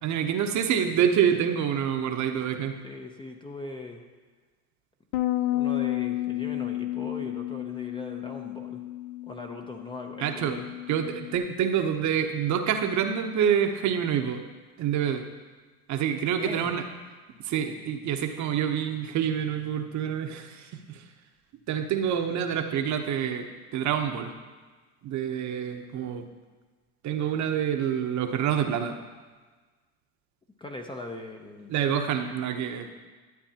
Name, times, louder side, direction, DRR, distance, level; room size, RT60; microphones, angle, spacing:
voice 1, 0.0-2.7 10.2-10.6 10.9-14.4 14.8-15.2 15.9-16.8 17.4-21.0 21.7-23.4 23.7-24.3 25.0-26.2 27.0-29.0 31.7-32.9, right 8 dB, 40° right, 6 dB, 0.9 m, -27 dB
voice 2, 2.8-4.0 5.5-8.8 9.3-10.7 16.4-16.8 30.6-31.7, left 2 dB, 10° left, 3 dB, 0.6 m, -40 dB
Bass guitar, 5.1-11.4, left 15 dB, 55° left, 0.6 m, -32 dB
12.0 x 8.8 x 2.8 m, 1.4 s
hypercardioid pair, 100°, 46 cm